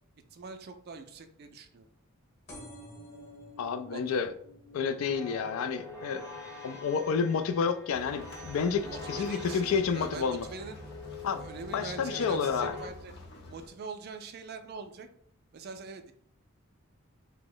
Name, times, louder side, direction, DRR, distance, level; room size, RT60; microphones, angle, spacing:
voice 1, 0.3-1.9 3.9-4.2 8.8-10.8 11.4-13.1 13.5-15.1 15.5-16.1, right 4 dB, 50° right, 8 dB, 0.4 m, -43 dB
sound 1, 2.5-9.7 10.2-10.7 11.5-11.6 11.8-11.9 12.1-12.2, equal, 35° left, 1.0 m, -53 dB
voice 2, 3.6-4.3 4.7-6.2 6.6-10.5 11.2-11.4 11.7-12.7, left 6 dB, 75° left, 8 dB, 0.3 m, -30 dB
sound 2, 4.8-12.9, left 3 dB, 15° left, 0.7 m, -44 dB
sound 3, 7.9-13.7, left 2 dB, 50° left, 0.7 m, -49 dB
2.9 x 2.0 x 3.7 m, 0.62 s
head